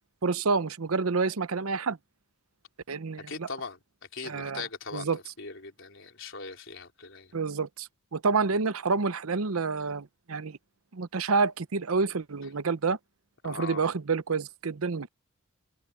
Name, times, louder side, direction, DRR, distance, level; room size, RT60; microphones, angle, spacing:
voice 1, 0.2-2.0 2.9-3.5 4.2-4.6 4.9-5.2 7.3-10.6 10.9-13.0 13.4-15.1, right 4 dB, 90° right, 0.8 m, -28 dB
voice 2, 3.3-3.8 4.1-5.1 5.4-7.3 13.4-13.9, left 4 dB, 60° left, 4.2 m, -40 dB
head